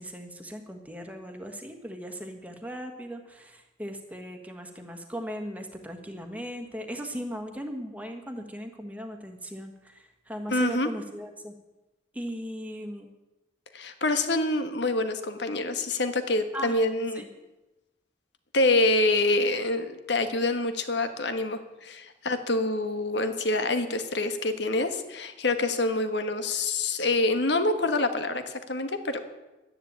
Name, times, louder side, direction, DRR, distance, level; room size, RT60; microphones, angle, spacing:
voice 1, 0.0-11.5 12.1-13.1 16.5-16.8 17.1-17.3, equal, 10° right, 5 dB, 1.5 m, -38 dB
voice 2, 10.5-10.9 13.7-17.2 18.5-29.2, left 2 dB, 65° left, 8 dB, 1.5 m, -26 dB
12.0 x 10.0 x 8.8 m, 1.0 s
head